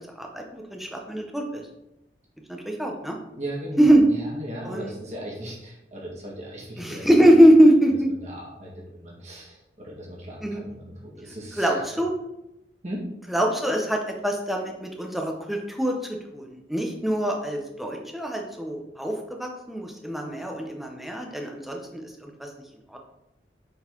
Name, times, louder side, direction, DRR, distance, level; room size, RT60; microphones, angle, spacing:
voice 1, 0.0-1.6 2.5-3.2 3.8-4.0 4.6-4.9 6.8-8.1 10.4-10.6 11.6-12.1 13.3-15.9 16.3-22.5 22.9-23.0, equal, ahead, 1 dB, 0.7 m, -22 dB
voice 2, 3.4-3.8 4.1-7.3 7.6-7.7 8.2-11.8 12.8-13.1, right 1 dB, 40° right, -3 dB, 1.8 m, -37 dB
7.1 x 3.9 x 3.8 m, 0.89 s
head